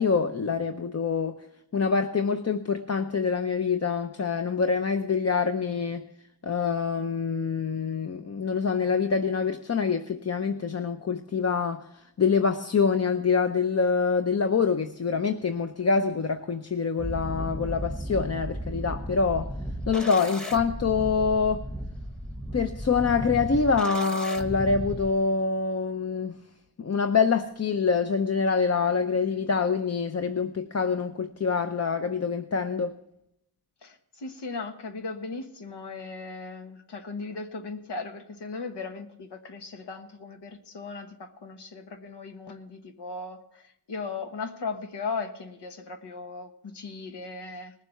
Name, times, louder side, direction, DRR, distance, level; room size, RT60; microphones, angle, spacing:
voice 1, 0.0-1.4 1.7-6.1 6.4-11.8 12.2-19.5 19.9-21.6 22.5-26.3 26.8-33.0, left 5 dB, 40° left, 7 dB, 0.7 m, -25 dB
sound 1, 17.0-25.1, equal, ahead, 1.0 m, -35 dB
voice 2, 33.8-47.7, left 4 dB, 85° left, 6 dB, 1.4 m, -37 dB
19.0 x 7.4 x 5.8 m, 0.78 s
wide cardioid pair, 85°, 40 cm